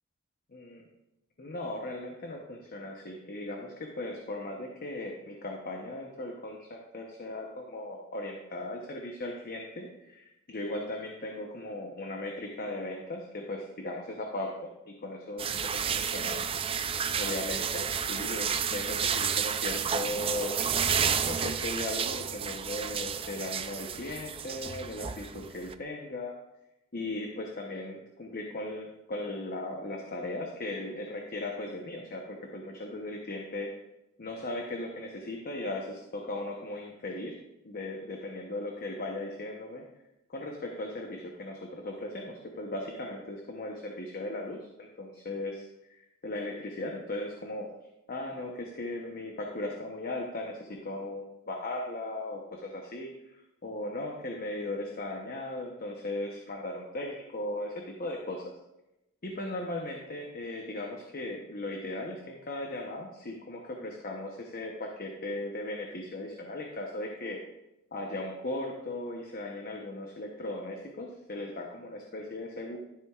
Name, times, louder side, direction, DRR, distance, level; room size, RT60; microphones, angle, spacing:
voice 1, 1.4-16.4 17.2-20.6 21.2-26.3 26.9-33.7 34.2-37.3 37.6-39.8 40.3-47.7 48.1-58.4 59.2-67.4 67.9-72.8, left 2 dB, 40° left, 1 dB, 0.9 m, -37 dB
sound 1, 15.4-25.7, right 7 dB, 25° right, 0.4 m, -31 dB
12.5 x 7.9 x 2.4 m, 0.92 s
head